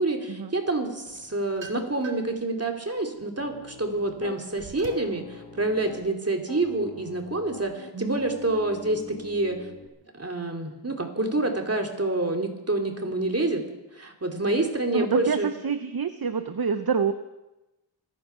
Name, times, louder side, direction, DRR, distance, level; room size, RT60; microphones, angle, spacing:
voice 1, 0.0-9.6 10.1-13.6 13.9-15.5, right 2 dB, 35° right, 2 dB, 2.7 m, -27 dB
sound 1, 1.0-2.4 2.9-5.2, right 4 dB, 85° right, 1.9 m, -46 dB
Piano, 3.4-4.4 4.9-6.1 6.5-9.9, left 3 dB, 75° left, 2.0 m, -45 dB
voice 2, 14.9-17.1, right 6 dB, 55° right, 9 dB, 0.8 m, -27 dB
26.0 x 9.0 x 5.6 m, 0.98 s
wide cardioid pair, 60°, 44 cm